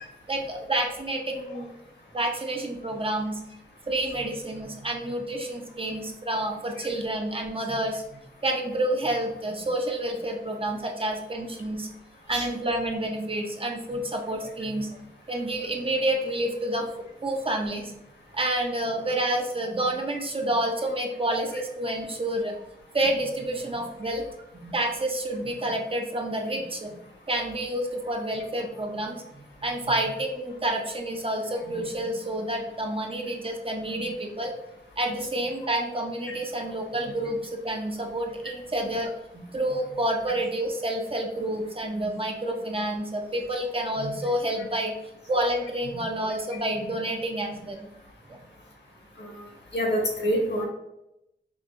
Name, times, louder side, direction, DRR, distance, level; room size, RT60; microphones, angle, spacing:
voice 1, 0.3-1.7 2.1-3.4 3.9-8.0 8.4-11.9 12.3-15.0 15.3-16.9 17.2-17.9 18.3-22.5 22.9-24.2 24.5-27.0 27.3-29.2 29.6-34.5 35.0-44.9 45.3-47.9 48.3-48.4, right 1 dB, 30° right, 1 dB, 0.5 m, -29 dB
voice 2, 49.7-50.6, equal, 80° left, -1 dB, 1.2 m, -26 dB
5.0 x 2.7 x 2.5 m, 0.85 s
wide cardioid pair, 115°, 18 cm